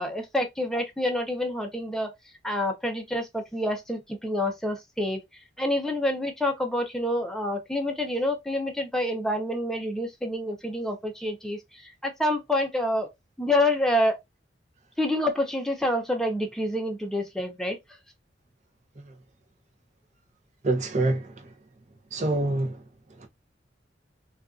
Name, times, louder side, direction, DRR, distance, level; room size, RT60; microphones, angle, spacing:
voice 1, 0.0-2.1 2.4-5.2 5.6-11.6 12.0-13.1 13.4-14.2 15.0-17.8, left 1 dB, 5° left, 0.6 m, -27 dB
voice 2, 20.6-21.5 22.1-23.3, right 2 dB, 40° right, 0.7 m, -27 dB
2.5 x 2.4 x 2.3 m
head